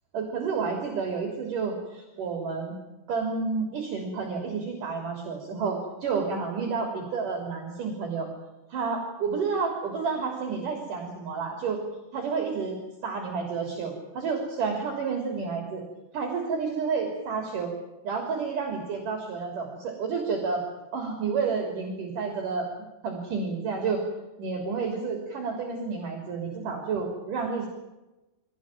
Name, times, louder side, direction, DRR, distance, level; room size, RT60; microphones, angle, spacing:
voice 1, 0.1-2.8 3.1-8.3 8.7-11.8 12.1-15.8 16.1-17.7 18.0-20.6 20.9-22.7 23.0-24.0 24.4-27.7, right 5 dB, 50° right, 2 dB, 4.6 m, -30 dB
23.5 x 18.0 x 9.1 m, 1.0 s
omnidirectional pair, 4.9 m